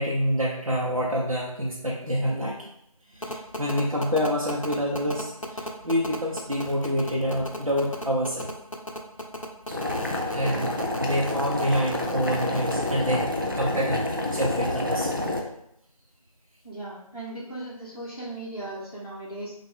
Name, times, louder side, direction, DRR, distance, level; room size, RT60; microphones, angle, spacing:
voice 1, 0.0-2.7 3.1-8.5 9.7-9.9 10.3-15.1, equal, 65° right, -5 dB, 0.9 m, -27 dB
sound 1, 3.2-12.9, left 1 dB, 60° left, 0.8 m, -34 dB
Boiling, 9.7-15.4, left 1 dB, 35° right, 0.5 m, -28 dB
voice 2, 10.3-10.7 16.6-19.5, right 2 dB, 40° left, -9 dB, 1.1 m, -37 dB
5.5 x 2.6 x 3.7 m, 0.77 s
figure-of-eight pair, 175°, 19 cm